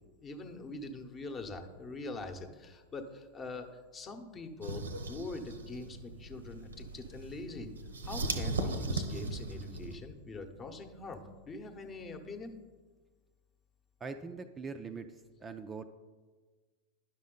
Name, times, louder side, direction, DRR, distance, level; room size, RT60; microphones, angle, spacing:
voice 1, 0.2-7.7 8.0-12.5, left 3 dB, 25° left, 7 dB, 0.9 m, -43 dB
sound 1, 4.6-10.0, right 3 dB, 75° right, 0.8 m, -38 dB
voice 2, 14.0-15.8, right 4 dB, 20° right, 7 dB, 0.4 m, -42 dB
10.5 x 6.1 x 3.8 m, 1.4 s
figure-of-eight pair, 90°, 0 cm